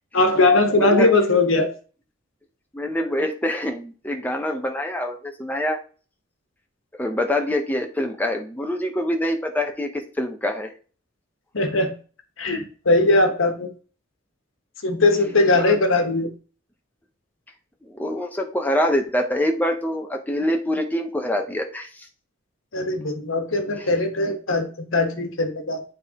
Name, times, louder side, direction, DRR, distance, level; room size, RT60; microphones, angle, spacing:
voice 1, 0.1-1.7 11.5-11.9 12.4-13.7 14.8-16.3 22.7-25.8, left 2 dB, 75° left, 4 dB, 1.2 m, -20 dB
voice 2, 0.8-1.1 2.7-5.8 7.0-10.7 15.5-15.8 17.8-22.1 23.8-23.9, left 1 dB, 10° left, 3 dB, 0.6 m, -25 dB
9.2 x 3.5 x 2.9 m, 0.38 s
head